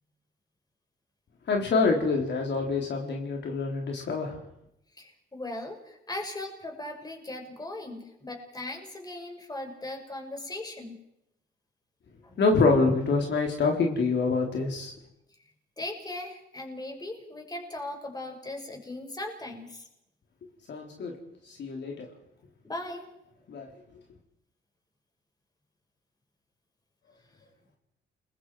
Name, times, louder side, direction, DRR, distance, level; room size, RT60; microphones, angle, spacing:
voice 1, 1.5-4.4 12.4-14.9 20.7-21.1 21.5-22.1 23.5-23.7, left 4 dB, 60° left, 1 dB, 3.7 m, -26 dB
voice 2, 4.9-11.0 12.2-12.4 15.8-19.9 22.6-23.1, left 2 dB, 20° left, 2 dB, 6.1 m, -38 dB
29.5 x 22.0 x 4.8 m, 0.82 s
cardioid pair, 90°, 20 cm